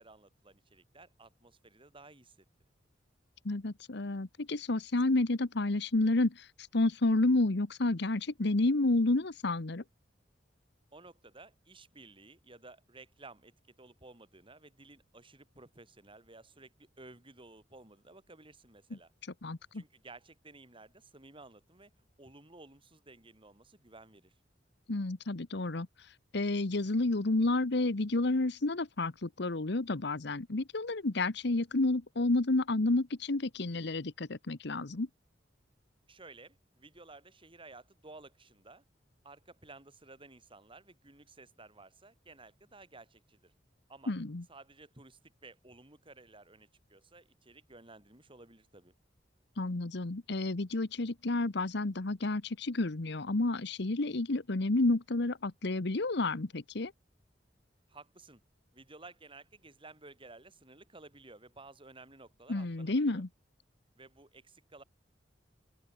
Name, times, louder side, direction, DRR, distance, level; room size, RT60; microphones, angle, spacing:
voice 1, 0.0-2.5 10.9-19.1 19.7-24.3 36.1-38.8 39.2-43.5 43.9-44.1 44.5-48.9 57.9-58.4 58.7-63.2 64.0-64.8, right 3 dB, 30° right, 6.9 m, -55 dB
voice 2, 3.4-6.5 6.7-9.8 19.4-19.8 24.9-25.9 26.3-35.1 44.1-44.4 49.6-56.9 62.5-63.3, left 2 dB, 70° left, 1.1 m, -30 dB
open air
head